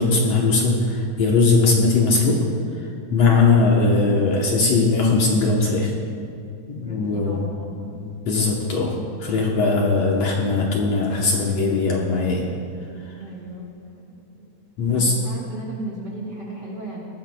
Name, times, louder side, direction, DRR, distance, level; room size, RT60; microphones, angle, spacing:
voice 1, 0.0-2.4 2.8-5.9 6.7-7.5 7.9-8.9 9.2-12.5 14.8-15.1, left 3 dB, 65° left, -1 dB, 1.9 m, -19 dB
voice 2, 6.8-8.0 13.2-13.7 14.3-14.5 14.8-17.0, right 2 dB, 45° right, -5 dB, 1.6 m, -35 dB
19.0 x 13.5 x 2.2 m, 2.4 s
omnidirectional pair, 3.7 m